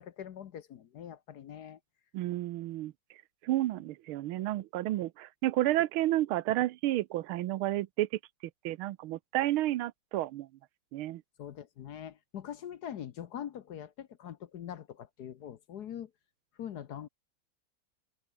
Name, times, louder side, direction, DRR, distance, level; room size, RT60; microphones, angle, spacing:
voice 1, 0.0-1.8 11.4-16.1 16.6-17.1, left 9 dB, 60° left, 1.3 m, -43 dB
voice 2, 2.1-2.9 3.4-8.1 8.6-10.5 10.9-11.2, right 15 dB, 85° right, 1.6 m, -31 dB
open air
omnidirectional pair, 2.3 m